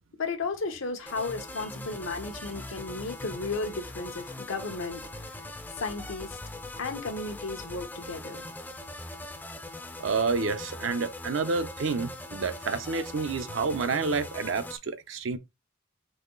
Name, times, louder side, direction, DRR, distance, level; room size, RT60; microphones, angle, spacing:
voice 1, 0.2-5.4 5.7-6.4 6.8-8.4, left 3 dB, 85° left, 0.9 m, -34 dB
sound 1, 1.1-14.8, left 2 dB, 10° left, 0.4 m, -41 dB
voice 2, 10.0-15.4, right 4 dB, 70° right, 0.6 m, -29 dB
4.1 x 3.1 x 3.6 m
head